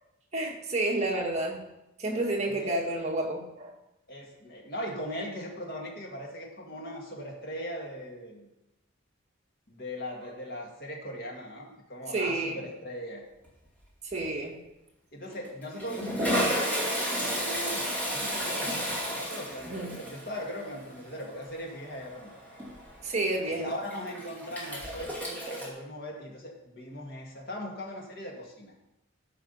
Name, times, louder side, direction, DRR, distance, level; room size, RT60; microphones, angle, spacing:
voice 1, 0.3-1.6 2.0-3.7 12.1-12.6 14.1-14.6 19.6-19.9 23.0-23.7, right 2 dB, 35° right, -1 dB, 1.7 m, -30 dB
voice 2, 2.5-2.8 4.1-8.5 9.7-13.2 15.1-18.8 19.1-22.3 23.4-28.7, equal, 50° left, 0 dB, 2.0 m, -39 dB
Toilet flush, 13.4-13.8 14.1-14.3 15.2-25.7, equal, 10° left, 2.3 m, -33 dB
13.0 x 5.1 x 5.6 m, 0.94 s
head